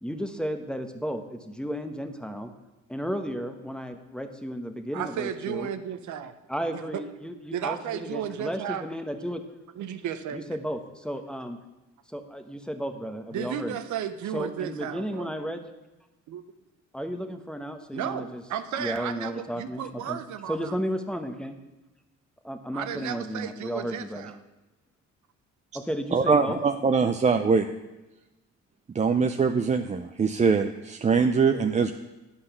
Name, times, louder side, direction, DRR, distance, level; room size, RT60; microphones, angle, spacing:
voice 1, 0.0-2.5 2.9-5.7 6.5-9.4 10.3-11.6 12.1-13.8 14.3-15.6 16.9-18.4 18.7-20.2 20.5-21.6 22.4-24.3 25.7-26.6, equal, 5° left, 7 dB, 1.0 m, -33 dB
voice 2, 4.9-6.3 6.7-7.0 7.5-8.8 9.8-10.4 13.3-15.3 16.3-16.4 17.9-20.7 22.7-24.4, right 9 dB, 70° right, 10 dB, 0.7 m, -34 dB
voice 3, 26.1-27.7 28.9-31.9, right 5 dB, 25° right, 7 dB, 0.4 m, -23 dB
10.0 x 5.6 x 6.8 m, 1.0 s
cardioid pair, 90°, 30 cm